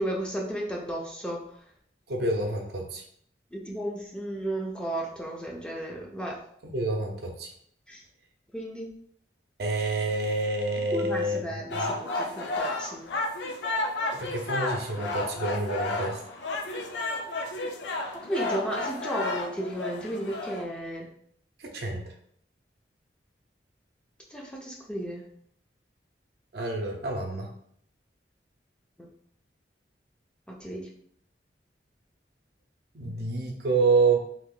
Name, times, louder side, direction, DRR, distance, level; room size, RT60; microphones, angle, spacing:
voice 1, 0.0-1.4 3.5-6.4 7.9-8.0 8.5-8.9 10.9-13.1 18.2-21.1 24.3-25.3 29.0-29.1 30.5-30.9, right 1 dB, 5° left, -2 dB, 0.4 m, -33 dB
voice 2, 2.1-3.0 6.7-7.5 9.6-11.4 11.7-11.9 14.1-16.2 21.6-22.0 26.5-27.5 32.9-34.2, right 3 dB, 60° right, 1 dB, 0.6 m, -28 dB
sound 1, 11.7-20.6, left 2 dB, 70° left, 0.4 m, -32 dB
2.8 x 2.4 x 3.6 m, 0.67 s
head